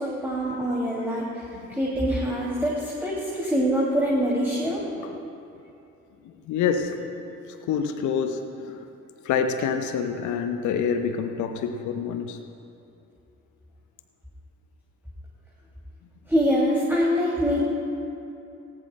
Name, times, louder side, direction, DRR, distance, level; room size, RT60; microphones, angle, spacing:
voice 1, 0.0-4.8 16.3-17.6, equal, 5° right, -5 dB, 2.5 m, -24 dB
voice 2, 6.2-7.3 7.6-8.9 9.2-12.4, left 6 dB, 55° left, 7 dB, 0.9 m, -27 dB
19.0 x 18.5 x 2.2 m, 2.7 s
figure-of-eight pair, 40°, 37 cm